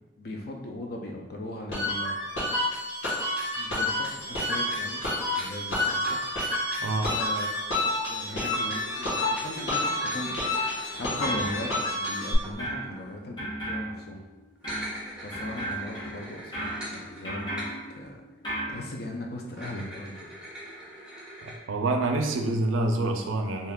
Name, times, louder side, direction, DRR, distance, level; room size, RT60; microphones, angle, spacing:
voice 1, 0.2-2.2 3.6-5.0 5.4-6.2 7.1-7.5 8.0-10.4 10.9-14.2 15.2-17.7 17.9-18.2 18.7-20.4, left 1 dB, 50° left, 1 dB, 0.5 m, -38 dB
sound 1, 1.7-12.3, left 1 dB, 75° left, 1.2 m, -29 dB
sound 2, 4.2-6.2 8.2-13.2 14.5-18.1 18.5-18.6 19.5-21.6, equal, 5° right, 0.5 m, -43 dB
voice 2, 6.8-7.1 21.4-23.7, right 2 dB, 90° right, 4 dB, 0.4 m, -27 dB
sound 3, 10.9-12.3 12.6-18.7, right 1 dB, 25° left, 0.8 m, -37 dB
2.7 x 2.3 x 3.5 m, 1.1 s
head